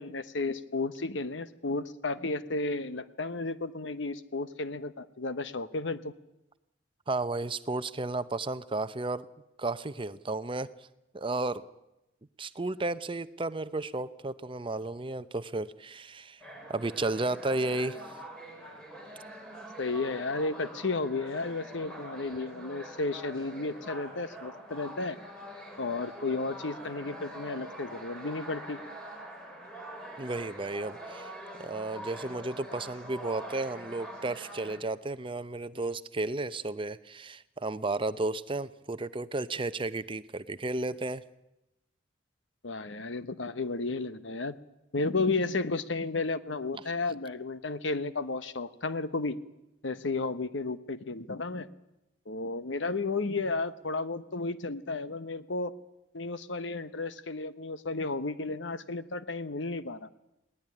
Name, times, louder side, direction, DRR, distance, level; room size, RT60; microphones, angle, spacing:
voice 1, 0.0-6.1 19.8-25.2 25.8-28.8 42.6-44.6 44.9-49.4 49.8-51.7 52.3-55.7 56.1-60.1, left 3 dB, 80° left, 12 dB, 1.1 m, -33 dB
voice 2, 7.1-9.3 9.6-10.7 11.1-11.6 12.4-16.4 16.7-18.0 30.2-31.3 31.6-41.2, right 2 dB, 30° right, 13 dB, 0.7 m, -33 dB
sound 1, 16.4-34.8, right 1 dB, 5° left, 5.1 m, -44 dB
20.0 x 18.5 x 9.9 m, 0.92 s
head